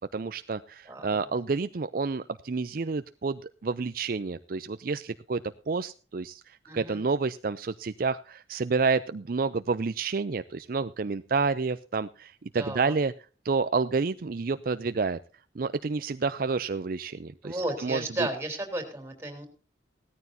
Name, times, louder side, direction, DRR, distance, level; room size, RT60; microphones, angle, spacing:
voice 1, 0.1-13.1 13.4-15.2 15.6-18.3, right 4 dB, 55° right, 12 dB, 0.5 m, -29 dB
voice 2, 0.9-1.3 6.7-7.0 12.5-12.9 17.4-19.5, right 1 dB, 15° right, 5 dB, 3.5 m, -34 dB
17.5 x 13.5 x 2.7 m, 0.34 s
head